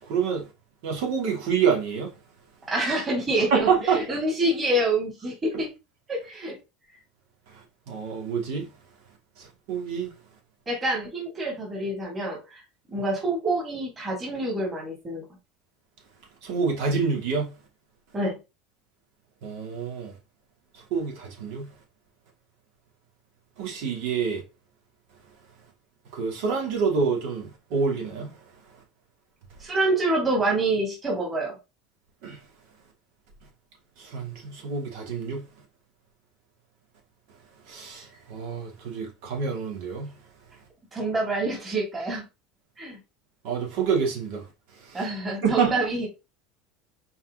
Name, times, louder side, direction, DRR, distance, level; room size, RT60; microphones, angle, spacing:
voice 1, 0.1-0.5 0.8-2.1 3.5-4.2 7.9-8.7 9.4-10.1 16.4-17.5 19.4-20.1 20.9-21.7 23.6-24.4 26.1-28.3 32.2-32.4 34.0-35.5 37.7-40.1 43.4-44.4 44.8-45.0 45.4-45.9, right 6 dB, 70° right, 2.7 m, -27 dB
voice 2, 2.7-5.7 6.1-6.6 10.7-12.6 12.9-15.2 18.1-18.4 29.6-31.6 40.9-42.2 42.8-43.0 44.9-46.1, right 2 dB, 20° right, 2.9 m, -27 dB
5.5 x 4.5 x 3.9 m
cardioid pair, 150°, 0 cm